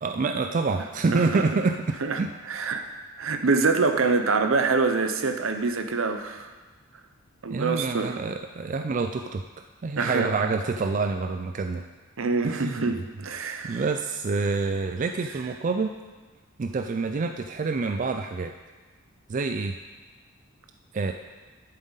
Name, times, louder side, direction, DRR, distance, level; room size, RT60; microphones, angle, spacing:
voice 1, 0.0-2.3 7.5-9.4 9.8-11.8 12.4-12.9 13.6-15.9 16.6-18.5 19.3-19.7 20.9-21.1, right 4 dB, 40° right, 6 dB, 0.4 m, -27 dB
voice 2, 1.1-1.4 2.0-2.2 2.5-2.8 3.2-6.5 7.4-8.2 10.0-10.3 12.2-13.8, right 4 dB, 70° right, 7 dB, 0.8 m, -25 dB
11.0 x 7.6 x 4.0 m, 1.3 s
head